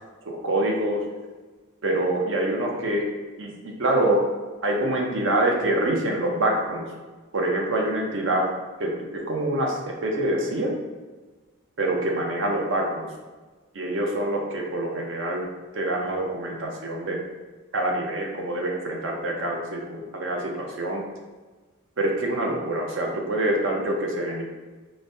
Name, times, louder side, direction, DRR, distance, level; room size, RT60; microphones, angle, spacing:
voice 1, 0.2-1.1 1.8-3.1 3.4-4.3 4.6-6.9 7.3-8.5 8.8-10.7 11.8-13.1 13.7-15.4 15.7-17.2 17.7-21.0 22.0-24.4, right 1 dB, 60° right, 0 dB, 0.7 m, -25 dB
4.9 x 2.1 x 2.7 m, 1.3 s
head